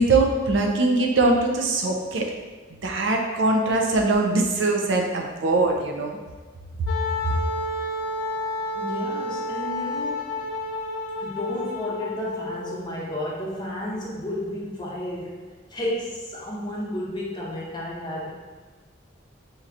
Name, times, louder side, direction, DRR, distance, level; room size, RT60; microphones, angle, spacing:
voice 1, 0.0-2.3 2.7-6.2 6.8-6.9 7.2-7.3, right 2 dB, 85° right, 1 dB, 0.5 m, -22 dB
Wind instrument woodwind instrument, 6.9-12.8, left 2 dB, 85° left, 0.4 m, -30 dB
voice 2, 8.7-10.4 11.2-18.3, left 1 dB, 25° left, -4 dB, 0.7 m, -32 dB
4.4 x 2.8 x 2.5 m, 1.4 s
head